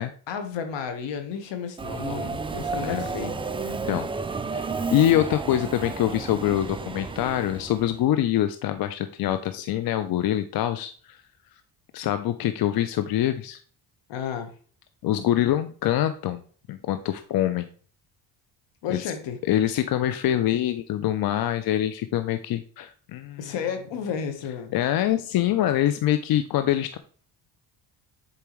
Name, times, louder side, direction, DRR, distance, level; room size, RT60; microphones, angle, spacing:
voice 1, 0.3-3.3 14.1-14.5 18.8-19.4 23.4-24.7, left 7 dB, 75° left, 8 dB, 1.3 m, -32 dB
Subway metro underground, 1.8-8.0, right 4 dB, 15° right, 0.3 m, -32 dB
voice 2, 3.6-4.1 4.5-11.2 11.9-13.6 15.0-16.4 16.7-17.7 18.9-19.1 19.5-23.5 24.7-27.0, left 12 dB, 55° left, 10 dB, 0.6 m, -25 dB
6.9 x 4.5 x 3.1 m, 0.43 s
cardioid pair, 90°, 44 cm